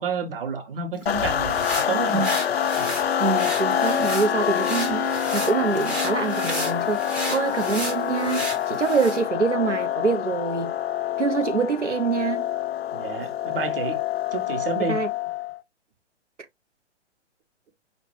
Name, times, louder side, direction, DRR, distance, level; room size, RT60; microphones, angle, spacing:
voice 1, 0.0-2.3 2.8-2.9 12.9-14.0 14.3-15.0, right 5 dB, 50° right, 1.2 m, -30 dB
sound 1, 1.0-9.2, equal, 5° right, 0.5 m, -34 dB
sound 2, 1.1-15.6, left 10 dB, 60° left, 0.5 m, -26 dB
voice 2, 3.2-5.1 5.3-10.7 11.2-12.4 14.9-15.1, right 5 dB, 90° right, 0.7 m, -25 dB
5.3 x 2.8 x 3.0 m
figure-of-eight pair, 120°, 35 cm